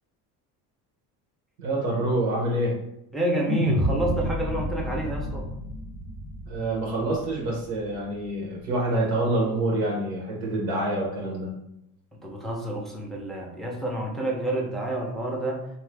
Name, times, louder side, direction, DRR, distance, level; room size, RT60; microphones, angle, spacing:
voice 1, 1.6-2.8 6.5-11.6, right 1 dB, 90° right, -2 dB, 1.3 m, -26 dB
voice 2, 3.1-5.4 12.2-15.6, right 1 dB, ahead, -2 dB, 0.5 m, -29 dB
sound 1, 3.5-7.8, equal, 50° right, 0.8 m, -30 dB
2.8 x 2.4 x 3.3 m, 0.81 s
cardioid pair, 110°, 39 cm